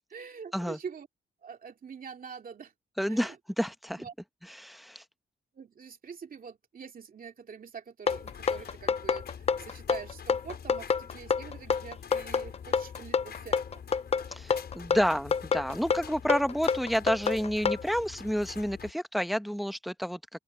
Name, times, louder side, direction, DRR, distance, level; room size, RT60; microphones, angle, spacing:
voice 1, 0.1-1.1 1.4-2.7 3.1-3.4 4.0-4.1 5.5-13.8, right 6 dB, 55° right, 2.6 m, -45 dB
voice 2, 3.0-4.1 4.4-5.0 14.3-20.2, equal, ahead, 0.9 m, -30 dB
sound 1, 8.1-18.9, left 7 dB, 65° left, 6.3 m, -45 dB
sound 2, 8.1-17.8, left 5 dB, 35° left, 0.5 m, -27 dB
cardioid pair, 105°, 18 cm